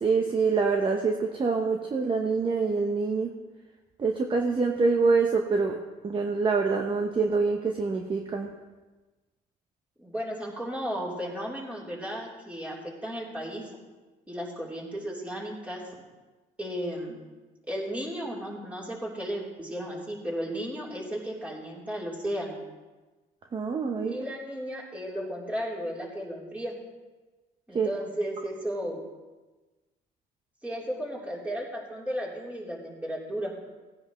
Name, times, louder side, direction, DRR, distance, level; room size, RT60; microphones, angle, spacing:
voice 1, 0.0-3.3 4.0-5.8 6.0-8.5 23.5-24.2 27.7-27.9, right 4 dB, 30° right, 2 dB, 0.9 m, -25 dB
voice 2, 10.0-13.7 14.3-15.8 16.6-17.2 17.7-22.6 24.1-26.7 27.7-29.0 30.6-33.6, equal, 10° right, -5 dB, 3.6 m, -34 dB
18.0 x 10.0 x 3.2 m, 1.2 s
cardioid pair, 110°, 17 cm